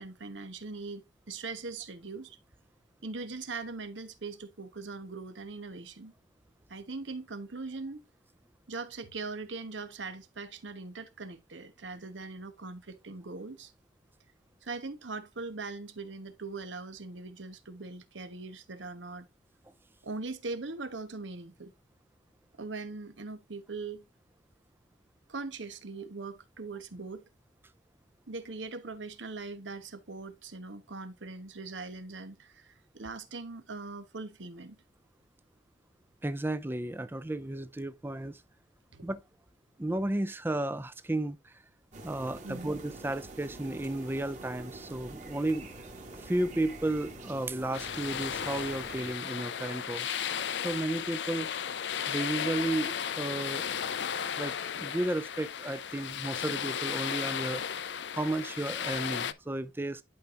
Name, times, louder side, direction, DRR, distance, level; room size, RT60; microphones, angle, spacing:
voice 1, 0.0-2.4 3.0-6.1 6.7-8.1 8.7-13.7 14.6-19.3 20.0-21.7 22.6-24.0 25.3-27.2 28.3-34.8 38.9-39.1 42.4-42.8, right 3 dB, 85° right, 1.1 m, -41 dB
voice 2, 36.2-38.4 39.0-39.2 39.8-41.5 42.0-45.7 46.2-50.1 50.6-51.5 52.1-53.7 54.4-57.8 58.1-60.0, right 1 dB, 10° right, 0.4 m, -33 dB
sound 1, 41.9-49.1, right 2 dB, 40° right, 2.1 m, -45 dB
sound 2, 47.7-59.3, left 8 dB, 70° left, 0.5 m, -35 dB
11.5 x 4.8 x 2.5 m
head